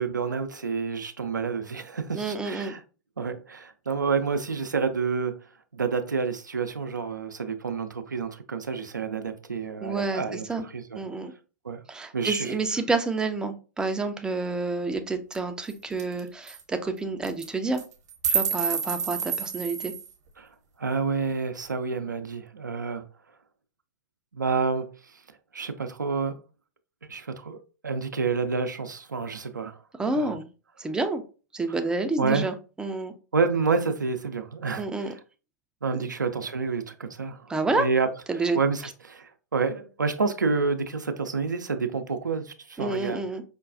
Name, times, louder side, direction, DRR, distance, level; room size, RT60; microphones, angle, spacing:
voice 1, 0.0-2.8 3.2-5.3 5.7-10.5 10.7-11.0 11.6-11.8 12.1-12.6 20.4-20.5 20.8-23.0 24.4-24.9 25.5-26.4 27.1-27.6 27.8-29.8 30.1-30.3 31.7-31.8 32.2-32.5 33.3-35.1 35.8-38.1 38.5-43.2, right 4 dB, 85° right, 0.5 m, -28 dB
voice 2, 2.1-2.7 9.8-10.6 11.0-11.3 11.9-17.8 18.3-19.9 30.0-30.5 30.8-31.2 31.5-33.1 34.8-35.1 35.9-36.1 37.5-37.9 38.3-38.6 42.8-43.4, right 3 dB, 10° right, 0.4 m, -29 dB
sound 1, 15.3-15.4 15.7-15.8 16.0-16.2 16.5-16.6 17.2-17.5 17.8-20.1, right 7 dB, 60° right, 0.9 m, -28 dB
5.1 x 2.2 x 2.4 m
figure-of-eight pair, 105°, 10 cm